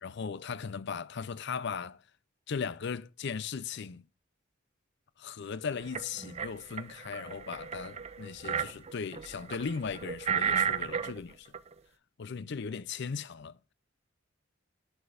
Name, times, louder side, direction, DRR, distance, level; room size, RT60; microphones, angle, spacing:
voice 1, 0.0-2.0 2.5-4.0 5.2-11.5 12.2-13.6, left 5 dB, 60° left, 0.5 m, -37 dB
sound 1, 5.8-6.5 6.8-11.2 11.5-11.7, right 7 dB, 30° right, 0.4 m, -33 dB
11.0 x 6.7 x 2.5 m
head